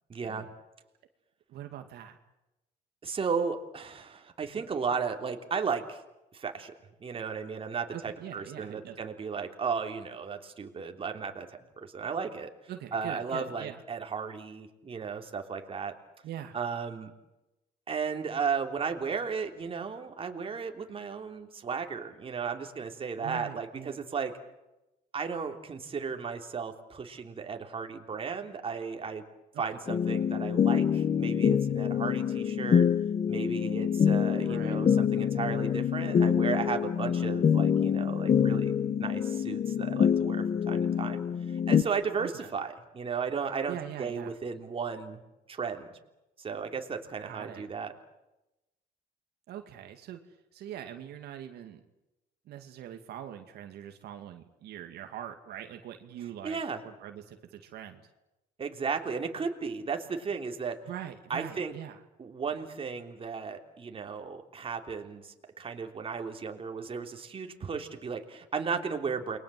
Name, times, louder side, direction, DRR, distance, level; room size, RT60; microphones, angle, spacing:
voice 1, 0.1-0.5 3.0-6.0 6.3-6.7 7.0-11.5 11.8-12.5 12.9-15.9 16.5-17.1 17.9-24.3 25.1-29.2 29.6-32.8 33.3-38.7 39.0-41.2 41.5-45.2 45.5-45.9 46.4-47.9 56.4-56.8 58.6-60.8 61.3-61.7 62.2-69.4, right 5 dB, 35° right, 4 dB, 3.4 m, -35 dB
voice 2, 1.5-2.2 7.9-9.0 12.7-13.8 16.2-16.6 23.2-24.0 29.5-29.6 34.4-34.8 42.2-42.5 43.7-44.3 47.2-47.6 49.5-51.8 52.5-58.0 60.9-62.0, right 10 dB, 70° right, 5 dB, 2.4 m, -43 dB
sound 1, 29.9-41.8, left 8 dB, 40° left, 1.7 m, -26 dB
29.5 x 22.5 x 7.8 m, 0.95 s
cardioid pair, 110°, 17 cm